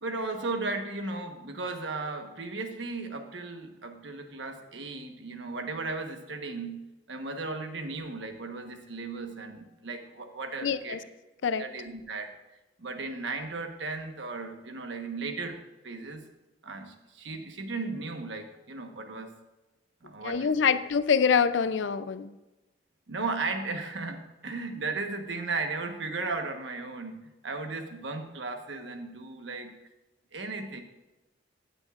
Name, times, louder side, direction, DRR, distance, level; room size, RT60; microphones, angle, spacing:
voice 1, 0.0-11.0 11.6-12.3 12.8-16.2 16.6-19.3 20.0-20.8 23.1-29.7 30.3-30.8, right 3 dB, 75° right, 5 dB, 1.2 m, -36 dB
voice 2, 10.6-11.0 11.4-11.6 20.2-22.3, left 6 dB, 75° left, 13 dB, 0.5 m, -25 dB
14.5 x 8.9 x 2.5 m, 1.1 s
head